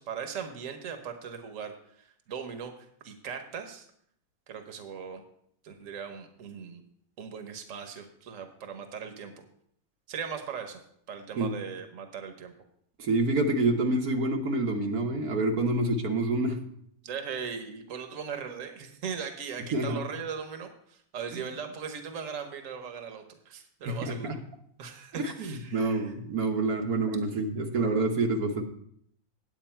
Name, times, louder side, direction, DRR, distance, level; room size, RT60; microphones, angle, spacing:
voice 1, 0.0-2.7 3.0-3.9 4.5-5.2 5.6-6.8 7.2-9.4 10.1-10.8 11.1-12.5 17.0-24.3 24.8-26.1, right 6 dB, 65° right, 6 dB, 1.3 m, -39 dB
voice 2, 13.0-16.6 19.7-20.0 21.3-21.4 23.9-24.4 25.1-28.6, right 2 dB, 90° right, 2 dB, 1.6 m, -27 dB
9.4 x 8.2 x 4.4 m, 0.69 s
omnidirectional pair, 1.5 m